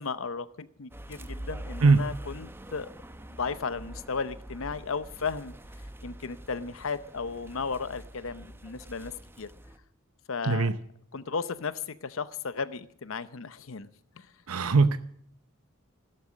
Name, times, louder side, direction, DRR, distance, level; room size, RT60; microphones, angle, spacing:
voice 1, 0.0-2.9 3.4-5.5 6.0-9.5 10.3-10.7 11.1-13.9 14.2-14.3, left 5 dB, 65° left, 15 dB, 0.7 m, -35 dB
sound 1, 0.9-9.8, right 1 dB, 10° right, 0.9 m, -44 dB
voice 2, 10.4-10.7 14.5-15.0, right 4 dB, 80° right, 11 dB, 0.8 m, -21 dB
15.5 x 13.0 x 6.3 m, 0.67 s
head